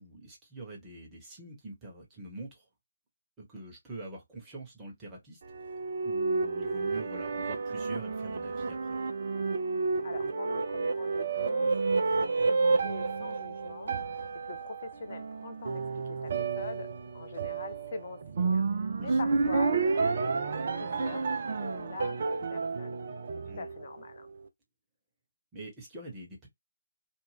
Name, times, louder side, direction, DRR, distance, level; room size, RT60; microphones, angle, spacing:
voice 1, 0.0-2.7 3.4-5.4 6.0-9.0 19.0-19.5 23.4-23.7 25.5-26.5, right 2 dB, 15° right, 1.1 m, -45 dB
sound 1, 5.4-24.0, right 4 dB, 50° right, 0.5 m, -30 dB
voice 2, 10.0-11.7 12.2-14.0 14.5-23.0 23.6-24.3, left 4 dB, 45° left, 0.5 m, -43 dB
2.6 x 2.1 x 3.2 m
figure-of-eight pair, 145°, 0 cm